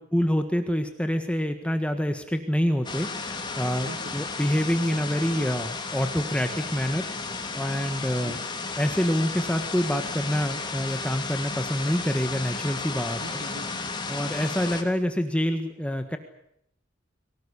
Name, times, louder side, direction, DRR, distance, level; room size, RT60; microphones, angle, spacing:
voice 1, 0.1-3.9 4.1-8.4 8.8-13.2 14.1-16.2, equal, 5° left, 7 dB, 1.5 m, -26 dB
sound 1, 2.8-14.8, left 4 dB, 25° left, 3.0 m, -33 dB
voice 2, 3.8-4.2 8.2-8.4 13.2-13.9, right 1 dB, 60° right, 7 dB, 2.4 m, -42 dB
24.0 x 18.5 x 9.9 m, 0.75 s
head